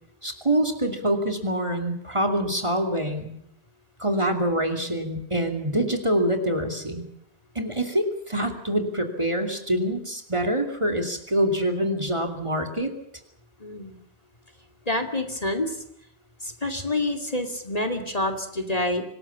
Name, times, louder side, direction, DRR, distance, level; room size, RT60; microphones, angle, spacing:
voice 1, 0.2-3.3 4.0-7.1 7.5-12.9, right 1 dB, 30° right, 4 dB, 2.7 m, -25 dB
voice 2, 13.6-14.0 14.9-15.8 16.4-19.0, left 1 dB, 35° left, 4 dB, 2.6 m, -27 dB
25.5 x 19.0 x 7.2 m, 0.72 s
omnidirectional pair, 1.1 m